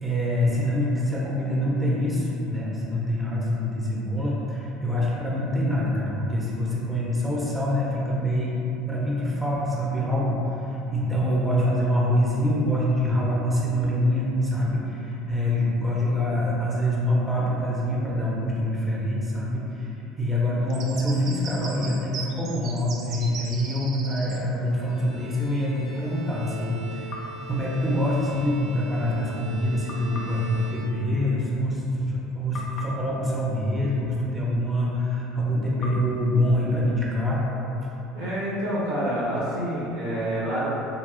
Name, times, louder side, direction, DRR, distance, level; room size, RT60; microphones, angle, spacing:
voice 1, 0.0-8.5 8.9-37.9, equal, 10° right, -5 dB, 0.6 m, -25 dB
sound 1, 20.7-24.4, right 4 dB, 50° right, 0.4 m, -38 dB
Bowed string instrument, 24.7-31.5, right 2 dB, 20° left, 0.8 m, -42 dB
Glass Knock, 27.1-28.5 29.9-32.2 32.5-34.8 35.8-37.7, left 2 dB, 50° left, 0.4 m, -43 dB
voice 2, 38.1-40.7, right 1 dB, 75° right, -8 dB, 1.0 m, -27 dB
3.6 x 2.6 x 2.5 m, 2.9 s
figure-of-eight pair, 65°, 0 cm